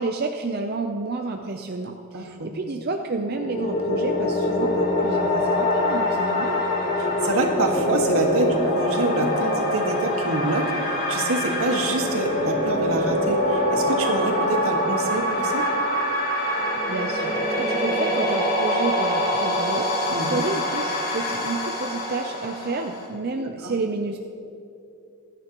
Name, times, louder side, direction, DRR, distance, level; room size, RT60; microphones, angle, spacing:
voice 1, 0.0-6.6 16.9-24.2, right 3 dB, 45° right, 4 dB, 0.6 m, -30 dB
voice 2, 2.1-2.5 7.0-15.6 20.1-20.4 23.4-23.7, right 2 dB, 85° right, 2 dB, 1.7 m, -26 dB
sound 1, 3.2-23.1, left 1 dB, 40° left, 3.4 m, -24 dB
25.5 x 10.0 x 3.0 m, 2.7 s
head